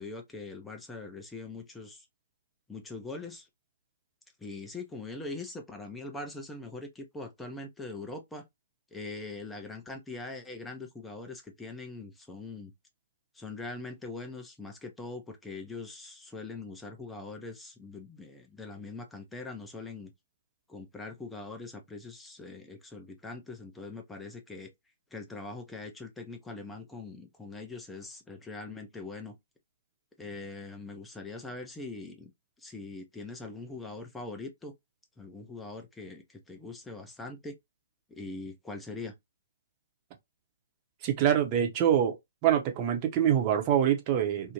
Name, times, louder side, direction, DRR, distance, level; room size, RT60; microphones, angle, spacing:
voice 1, 0.0-2.1 2.7-3.5 4.4-8.5 8.9-12.7 13.3-20.1 20.7-24.7 25.1-29.4 30.2-32.3 32.6-34.7 35.2-37.6 38.1-39.1, left 3 dB, 5° left, 0.6 m, -42 dB
voice 2, 41.0-42.2 42.4-44.5, right 10 dB, 30° right, 0.7 m, -25 dB
2.6 x 2.1 x 2.9 m
figure-of-eight pair, 125°, 0 cm